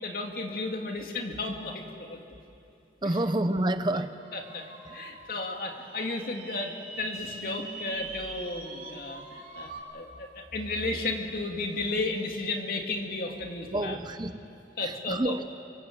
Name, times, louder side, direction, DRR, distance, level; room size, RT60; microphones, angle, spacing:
voice 1, 0.0-2.2 3.0-3.2 3.9-4.0 4.3-14.0 14.8-15.3, left 2 dB, 55° left, 2 dB, 2.5 m, -34 dB
voice 2, 3.0-4.1 13.7-14.4 14.8-15.4, right 1 dB, 25° right, 10 dB, 0.7 m, -28 dB
sound 1, 4.2-9.8, right 3 dB, 50° right, 3.1 m, -44 dB
sound 2, 7.1-9.2 9.6-12.2 12.5-13.1, equal, 20° left, 3.5 m, -47 dB
27.0 x 25.0 x 7.9 m, 2.7 s
head